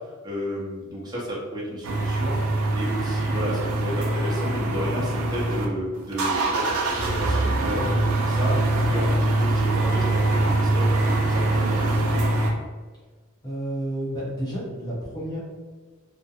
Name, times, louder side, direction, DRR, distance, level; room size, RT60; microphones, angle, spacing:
voice 1, 0.2-12.2, equal, 20° right, -6 dB, 0.6 m, -32 dB
sound 1, 1.8-5.7 6.0-12.5, right 2 dB, 75° right, 0.5 m, -23 dB
voice 2, 13.4-15.4, right 1 dB, 20° left, -8 dB, 0.9 m, -31 dB
2.4 x 2.1 x 2.7 m, 1.4 s
head